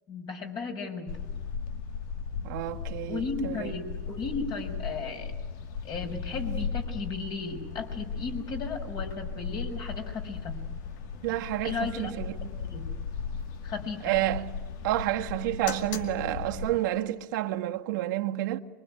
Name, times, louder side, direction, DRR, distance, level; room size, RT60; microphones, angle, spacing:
voice 1, 0.1-1.1 3.1-5.3 5.8-10.6 11.6-12.1 12.7-12.9 13.6-14.0, left 4 dB, 40° left, 5.8 m, -35 dB
sound 1, 1.1-16.8, left 6 dB, 70° left, 2.3 m, -37 dB
voice 2, 2.4-3.7 11.2-12.6 14.0-14.5 14.8-18.6, right 14 dB, 75° right, 1.6 m, -30 dB
24.5 x 24.0 x 10.0 m
supercardioid pair, 120°, 10 cm